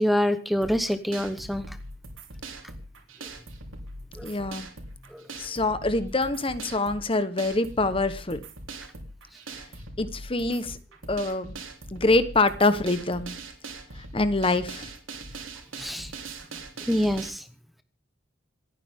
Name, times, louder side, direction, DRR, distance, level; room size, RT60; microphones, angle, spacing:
voice 1, 0.0-1.6 4.2-4.3 5.1-5.2 15.8-16.1 16.9-17.4, equal, ahead, 10 dB, 0.9 m, -26 dB
sound 1, 0.6-17.3, right 2 dB, 90° right, 3.6 m, -41 dB
voice 2, 4.2-4.7 5.4-8.4 10.0-10.8 11.1-11.5 11.9-13.3 14.0-14.9, left 2 dB, 25° left, 13 dB, 1.1 m, -25 dB
27.5 x 9.6 x 3.6 m, 0.34 s
head